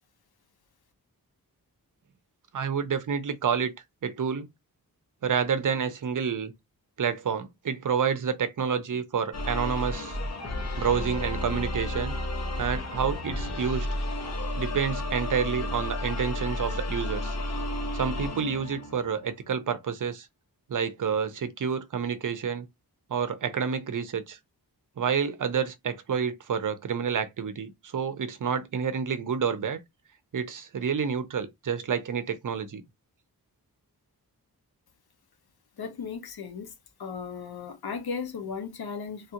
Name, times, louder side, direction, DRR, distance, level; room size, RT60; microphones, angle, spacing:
voice 1, 2.5-3.7 4.0-4.5 5.2-6.5 7.0-10.2 10.8-12.1 12.6-13.9 14.3-17.4 17.9-20.3 20.7-22.7 23.1-24.4 25.0-29.8 30.3-32.8, right 7 dB, 55° right, 0.6 m, -29 dB
sound 1, 9.3-19.3, left 1 dB, 45° left, 0.7 m, -32 dB
voice 2, 35.8-36.7 37.0-39.3, left 5 dB, 75° left, 0.8 m, -36 dB
3.2 x 2.4 x 2.8 m
wide cardioid pair, 130°, 37 cm